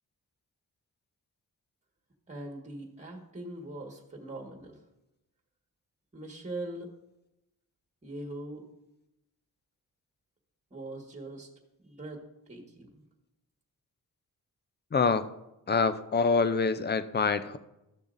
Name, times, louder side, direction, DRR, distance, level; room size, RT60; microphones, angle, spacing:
voice 1, 2.3-4.8 6.1-6.9 8.0-8.6 10.7-11.5 11.8-12.2 12.5-13.0, right 1 dB, 20° right, 2 dB, 1.7 m, -41 dB
voice 2, 14.9-15.3 15.7-17.6, left 4 dB, 30° left, 13 dB, 0.5 m, -26 dB
13.0 x 6.8 x 2.6 m, 0.91 s
cardioid pair, 70°, 35 cm